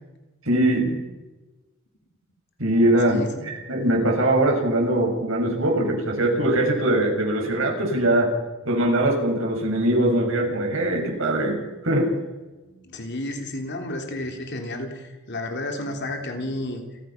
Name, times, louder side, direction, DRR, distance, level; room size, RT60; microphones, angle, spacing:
voice 1, 0.4-1.0 2.6-8.3 8.6-12.1, right 1 dB, 75° right, 0 dB, 7.1 m, -22 dB
voice 2, 3.1-3.5 12.6-16.8, left 1 dB, 55° left, 4 dB, 3.3 m, -32 dB
29.5 x 15.0 x 6.0 m, 1.1 s
head